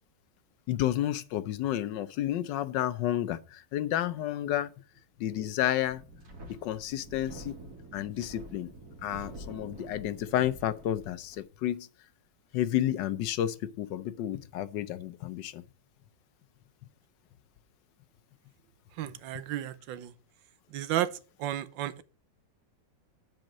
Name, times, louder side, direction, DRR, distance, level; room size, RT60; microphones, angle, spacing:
voice 1, 0.7-4.7 5.2-6.0 6.6-7.6 7.9-8.7 9.0-11.9 12.5-15.6, left 12 dB, 75° left, 1.3 m, -31 dB
Wind, 5.8-11.4, right 1 dB, 55° right, 2.3 m, -47 dB
voice 2, 19.0-20.1 20.7-21.1 21.4-22.0, right 12 dB, 90° right, 1.4 m, -32 dB
7.7 x 5.2 x 7.2 m
omnidirectional pair, 2.0 m